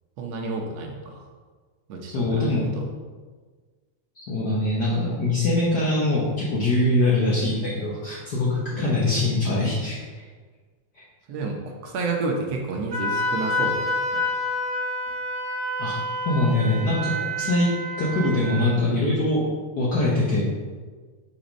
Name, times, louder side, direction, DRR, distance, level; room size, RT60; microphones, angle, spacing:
voice 1, 0.2-1.2 1.9-2.8 8.7-9.0 11.3-14.3, right 3 dB, 70° right, 1 dB, 1.8 m, -30 dB
voice 2, 2.1-2.7 4.2-10.2 11.0-11.1 15.8-16.0 16.2-17.7 18.0-19.4 19.8-20.4, left 2 dB, 70° left, -6 dB, 0.9 m, -23 dB
Wind instrument woodwind instrument, 12.9-18.7, left 1 dB, 45° right, 1.6 m, -28 dB
5.7 x 5.2 x 5.1 m, 1.5 s
omnidirectional pair, 3.5 m